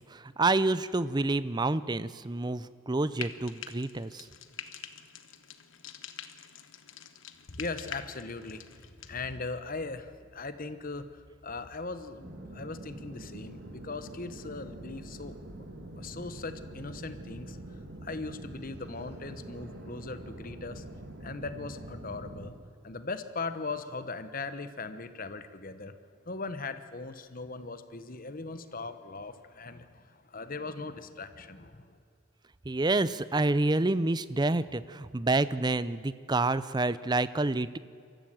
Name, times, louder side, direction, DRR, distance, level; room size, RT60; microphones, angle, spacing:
voice 1, 0.0-4.3 32.6-37.8, right 2 dB, 20° right, 16 dB, 0.5 m, -28 dB
Frying (food), 3.1-9.1, left 9 dB, 65° left, 1.1 m, -45 dB
voice 2, 7.5-15.4 16.0-20.8 21.2-22.5 22.8-25.9 26.2-32.0, left 3 dB, 40° left, 11 dB, 1.1 m, -39 dB
sound 1, 12.2-22.5, right 1 dB, 50° right, 2.5 m, -44 dB
23.5 x 14.5 x 7.7 m, 2.4 s
head